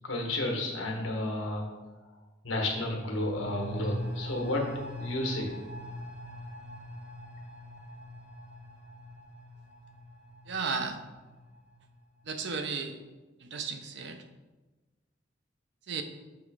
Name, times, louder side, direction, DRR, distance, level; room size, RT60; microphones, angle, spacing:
voice 1, 0.0-1.6 2.4-4.7 5.0-5.5, left 1 dB, 90° left, 1 dB, 1.3 m, -31 dB
sound 1, 2.5-11.9 12.2-12.3, equal, 80° right, 1.7 m, -42 dB
voice 2, 10.5-11.0 12.3-12.9 13.4-14.2 15.9-16.0, right 5 dB, 60° right, 7 dB, 0.6 m, -34 dB
6.9 x 3.1 x 4.8 m, 1.2 s
head